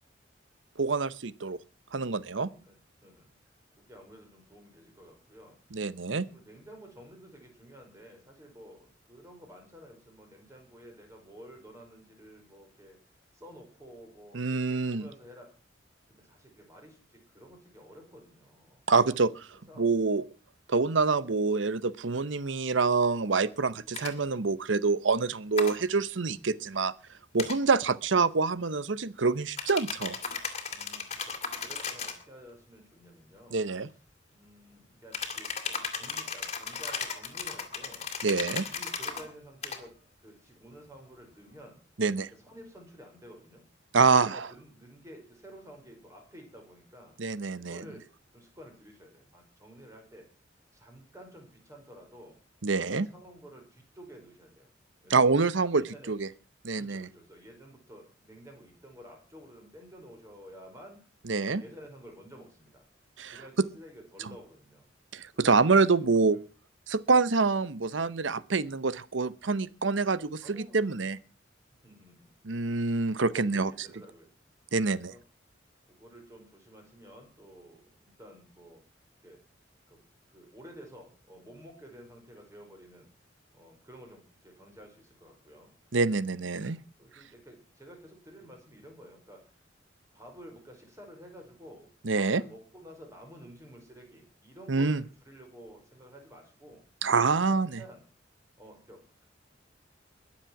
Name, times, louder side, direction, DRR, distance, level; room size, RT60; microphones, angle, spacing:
voice 1, 0.8-1.6 1.9-2.5 5.7-6.3 14.3-15.1 18.9-19.5 19.8-20.2 20.7-26.9 27.3-30.2 33.5-33.9 38.2-38.6 42.0-42.3 43.9-44.5 47.2-47.8 52.6-53.1 55.1-56.3 56.6-57.1 61.3-61.6 63.2-63.3 65.1-66.4 66.9-71.2 72.4-73.7 74.7-75.1 85.9-86.8 92.0-92.4 94.7-95.0 97.0-97.8, right 4 dB, 80° right, 17 dB, 0.9 m, -26 dB
voice 2, 2.5-3.3 3.8-5.9 6.3-13.0 13.3-15.5 16.1-18.8 19.7-19.9 30.7-33.6 34.3-38.1 38.5-39.9 40.2-41.8 42.3-43.6 44.2-48.1 48.3-50.3 50.7-52.4 52.8-54.7 55.0-55.3 55.7-56.1 56.7-61.0 61.4-62.8 63.3-64.9 65.3-66.2 70.4-71.1 71.8-72.3 73.3-74.3 74.9-75.2 76.0-78.8 79.2-79.4 79.9-83.1 83.5-85.7 86.3-89.4 90.1-96.8 97.5-98.0 98.6-99.3, equal, 15° right, 2 dB, 5.2 m, -51 dB
sound 1, 23.9-24.1 25.6-25.8 27.4-27.6 29.6-32.2 35.1-39.2 39.6-39.8, left 5 dB, 35° left, 2.7 m, -36 dB
22.0 x 7.5 x 6.0 m, 0.36 s
head